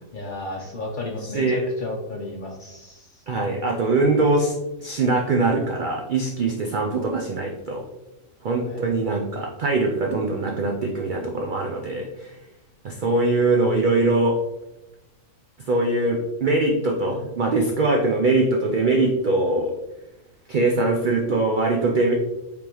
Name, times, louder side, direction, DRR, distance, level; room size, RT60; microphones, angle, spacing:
voice 1, 0.1-3.2 8.7-8.8, left 2 dB, 55° left, 0 dB, 0.6 m, -33 dB
voice 2, 3.3-4.5 4.8-7.8 8.4-12.4 12.8-14.4 15.7-19.7 20.5-22.1, right 2 dB, 65° right, 0 dB, 0.5 m, -22 dB
5.0 x 3.4 x 2.9 m, 0.99 s
omnidirectional pair, 1.4 m